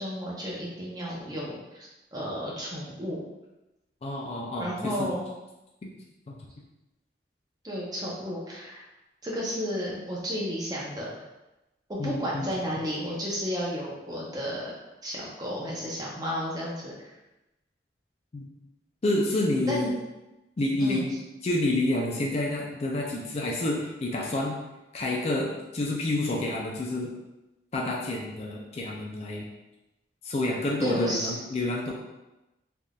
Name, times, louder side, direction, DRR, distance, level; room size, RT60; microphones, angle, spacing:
voice 1, 0.0-3.2 4.6-5.3 7.6-8.8 9.2-11.1 12.0-14.7 15.0-17.1 19.6-19.9 20.8-21.0 30.8-31.4, equal, 20° right, -5 dB, 0.7 m, -32 dB
voice 2, 4.0-5.1 6.3-6.4 12.0-12.5 18.3-18.5 19.0-19.9 20.6-21.1 21.4-24.6 24.9-27.1 27.7-29.5 30.2-31.9, left 1 dB, 35° left, -2 dB, 0.4 m, -28 dB
3.4 x 2.6 x 2.3 m, 1.0 s
head